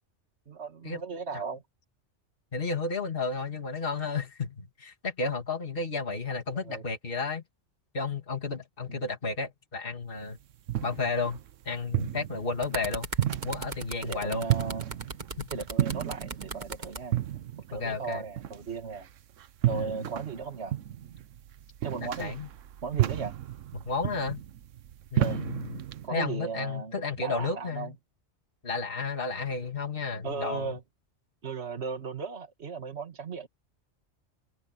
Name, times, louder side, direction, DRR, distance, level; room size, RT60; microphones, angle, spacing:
voice 1, 0.5-1.6 6.7-6.9 8.9-9.1 12.7-12.8 14.0-14.9 15.5-17.2 17.7-19.1 19.7-20.8 21.8-22.4 22.8-23.4 25.2-25.4 26.0-27.9 30.2-30.8 31.4-33.5, right 5 dB, 60° right, 2.0 m, -36 dB
voice 2, 2.5-7.4 7.9-10.4 10.8-11.4 11.7-13.1 13.4-14.5 15.4-15.5 17.7-18.2 19.7-20.0 22.0-22.5 23.7-24.4 25.1-25.8 26.1-27.9 28.6-30.8, left 4 dB, 45° left, 2.6 m, -32 dB
sound 1, 10.2-26.1, right 12 dB, 90° right, 1.1 m, -33 dB
sound 2, 12.3-17.0 17.9-18.1, right 3 dB, 40° right, 1.6 m, -38 dB
omnidirectional pair, 1.3 m